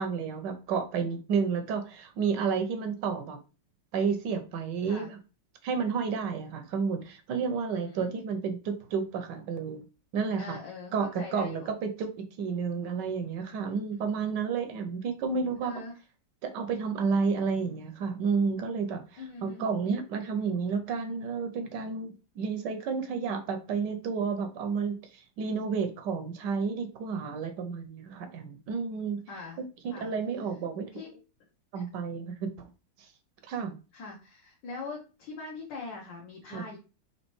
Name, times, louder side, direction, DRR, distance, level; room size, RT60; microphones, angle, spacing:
voice 1, 0.0-3.4 3.9-5.2 5.6-9.8 10.1-10.6 10.9-12.1 12.4-15.7 16.4-29.2 29.6-30.9 31.7-32.7 33.0-33.1 33.4-33.8 36.5-36.6, right 5 dB, 75° right, 7 dB, 1.2 m, -31 dB
voice 2, 10.4-11.7 13.5-14.3 15.6-15.9 19.2-19.6 27.3-27.4 29.3-29.6 29.9-30.1 30.9-31.1 31.7-31.8 33.9-36.8, left 4 dB, 70° left, -2 dB, 1.5 m, -42 dB
4.2 x 2.8 x 3.0 m, 0.33 s
omnidirectional pair, 2.1 m